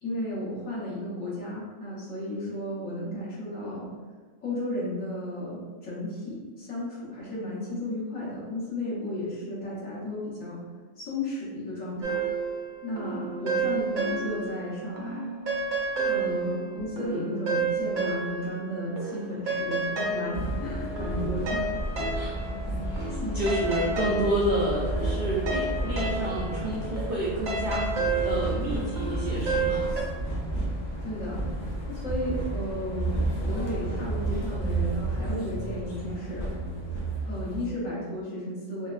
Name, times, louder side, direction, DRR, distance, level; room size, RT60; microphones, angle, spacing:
voice 1, 0.0-3.9 4.4-10.6 11.0-12.2 12.8-15.2 16.0-21.6 21.9-22.1 23.2-23.5 31.0-31.4 31.9-36.5 37.3-38.9, left 1 dB, 75° left, -7 dB, 1.3 m, -34 dB
sound 1, 12.0-14.6 15.0-18.7 19.0-30.0, right 3 dB, 85° right, 1.0 m, -31 dB
voice 2, 16.2-16.6 22.1-22.5 22.8-27.9 28.2-29.9, right 1 dB, 65° right, -7 dB, 0.5 m, -30 dB
sound 2, 20.3-37.7, right 2 dB, 55° left, 0.6 m, -31 dB
3.4 x 2.1 x 2.3 m, 1.4 s
omnidirectional pair, 1.4 m